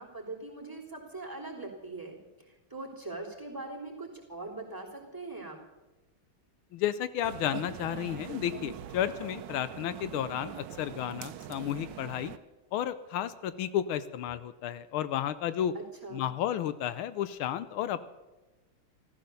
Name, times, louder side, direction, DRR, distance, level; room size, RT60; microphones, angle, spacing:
voice 1, 0.0-2.2 2.5-5.6 15.7-16.3, right 2 dB, 10° right, -3 dB, 3.1 m, -41 dB
voice 2, 6.7-12.3 12.7-15.7 16.1-18.1, left 11 dB, 85° left, 13 dB, 1.5 m, -32 dB
sound 1, 7.2-12.4, right 11 dB, 70° right, 1.2 m, -43 dB
14.5 x 14.0 x 6.8 m, 1.1 s
omnidirectional pair, 2.3 m